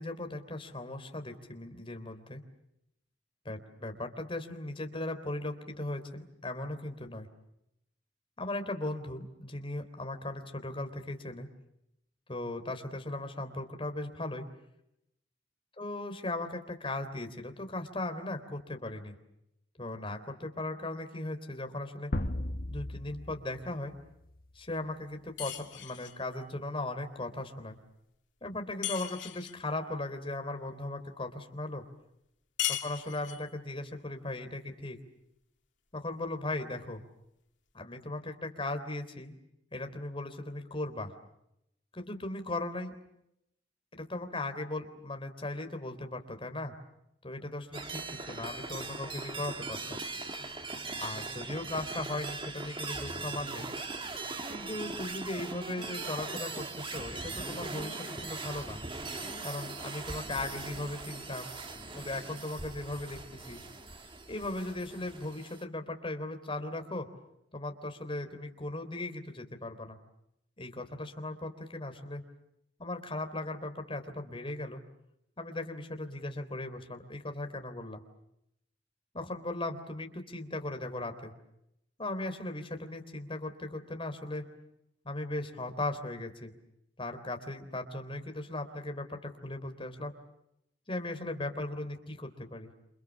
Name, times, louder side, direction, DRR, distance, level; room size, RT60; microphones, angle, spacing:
voice 1, 0.0-2.4 3.5-7.3 8.4-11.5 12.3-14.5 15.8-19.1 19.8-22.1 22.7-23.9 24.6-27.8 28.4-31.8 32.8-35.0 35.9-37.0 37.7-39.4 39.7-41.1 41.9-42.9 43.9-46.7 47.2-50.0 51.0-53.7 54.5-58.8 59.4-61.5 61.9-63.6 64.3-67.1 67.5-70.0 70.6-72.2 72.8-74.8 75.4-78.0 79.1-81.3 82.0-84.5 85.1-86.5 87.0-90.1 90.9-92.7, left 2 dB, 30° left, 6 dB, 3.5 m, -38 dB
sound 1, 22.1-24.6, left 1 dB, 55° left, 1.5 m, -36 dB
sound 2, 25.4-26.2 28.8-29.6 32.6-33.5, left 12 dB, 85° left, 2.9 m, -36 dB
sound 3, 47.7-65.6, right 3 dB, 30° right, 2.1 m, -40 dB
28.5 x 28.0 x 7.3 m, 0.83 s
head